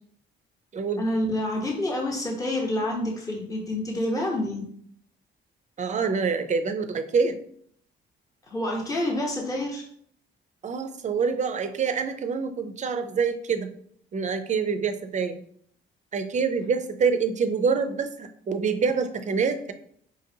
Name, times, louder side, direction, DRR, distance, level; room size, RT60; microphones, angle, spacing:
voice 1, 1.0-4.6 8.5-9.8, left 1 dB, 15° left, -2 dB, 0.9 m, -28 dB
voice 2, 5.8-7.4 10.6-13.7 14.1-15.4 16.1-19.7, right 5 dB, 35° right, 8 dB, 0.4 m, -26 dB
5.0 x 2.5 x 2.7 m, 0.64 s
cardioid pair, 90°, 20 cm